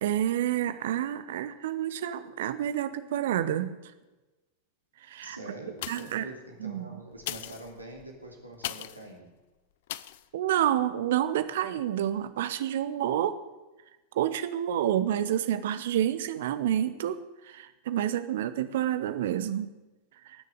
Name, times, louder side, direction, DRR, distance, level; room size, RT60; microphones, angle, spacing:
voice 1, 0.0-3.7 5.0-5.4 5.9-6.3 6.6-6.8 10.3-13.4 14.1-19.7, right 11 dB, 55° right, 13 dB, 1.0 m, -29 dB
voice 2, 5.2-9.3, right 1 dB, 85° right, 1 dB, 2.8 m, -45 dB
sound 1, 5.7-6.3 7.1-9.1 9.9-10.3 10.8-10.9, left 14 dB, 55° left, 0.5 m, -39 dB
19.0 x 6.7 x 8.9 m, 1.1 s
figure-of-eight pair, 90°, 0 cm